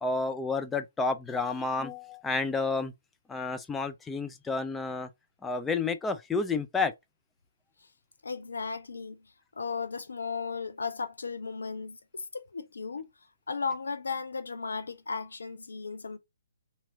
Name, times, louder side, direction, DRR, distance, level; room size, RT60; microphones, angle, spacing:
voice 1, 0.0-2.9 3.3-5.1 5.4-6.9, left 4 dB, 10° left, 0.4 m, -30 dB
voice 2, 8.2-13.1 13.5-16.2, left 5 dB, 65° left, 0.6 m, -36 dB
2.9 x 2.8 x 3.7 m
figure-of-eight pair, 130°, 0 cm